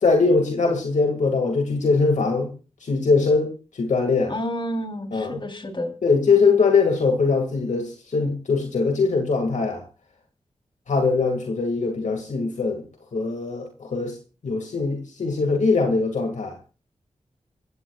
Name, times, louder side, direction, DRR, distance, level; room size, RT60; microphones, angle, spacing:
voice 1, 0.0-2.5 2.8-4.3 5.1-5.4 6.0-9.8 10.9-12.8 13.1-14.2 14.4-16.5, left 4 dB, 85° left, 2.2 m, -21 dB
voice 2, 4.3-5.9, equal, 45° left, 3.6 m, -30 dB
26.0 x 15.0 x 2.4 m
cardioid pair, 55°, 12 cm